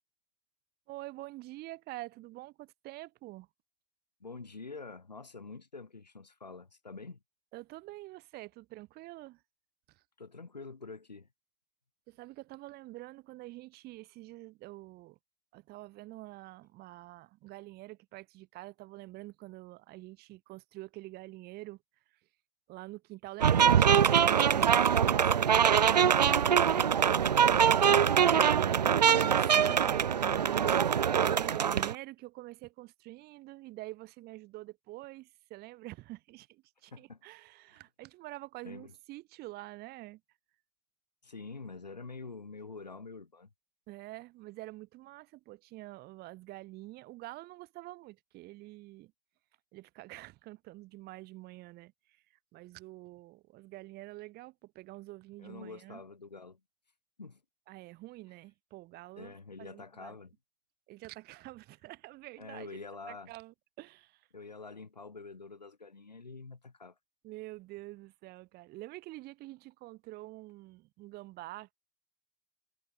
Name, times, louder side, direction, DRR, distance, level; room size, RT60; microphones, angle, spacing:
voice 1, 0.9-3.5 7.5-9.4 9.9-10.0 12.1-15.2 15.5-22.2 22.7-26.9 27.2-30.8 31.2-40.2 43.9-49.1 49.7-56.0 57.7-60.2 60.9-62.8 63.1-64.3 67.2-71.8, right 19 dB, 50° right, 3.2 m, -46 dB
voice 2, 4.2-7.2 10.2-11.3 27.5-27.7 36.9-37.2 38.6-38.9 41.2-43.5 55.4-56.6 57.2-57.4 59.2-60.3 62.4-63.3 64.3-66.9, left 4 dB, 90° left, 2.5 m, -46 dB
sound 1, 23.4-32.0, right 8 dB, 85° right, 0.7 m, -24 dB
figure-of-eight pair, 70°, 21 cm